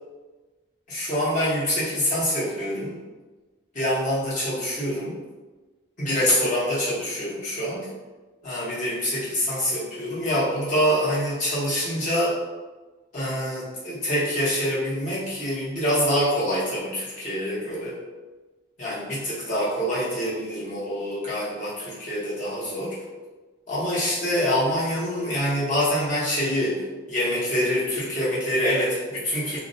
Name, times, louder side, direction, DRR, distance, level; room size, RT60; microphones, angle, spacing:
voice 1, 0.9-2.9 3.7-5.1 6.0-7.9 8.4-12.4 13.1-17.9 18.8-23.0 23.7-29.6, equal, 40° left, -9 dB, 0.9 m, -25 dB
2.4 x 2.0 x 2.6 m, 1.2 s
head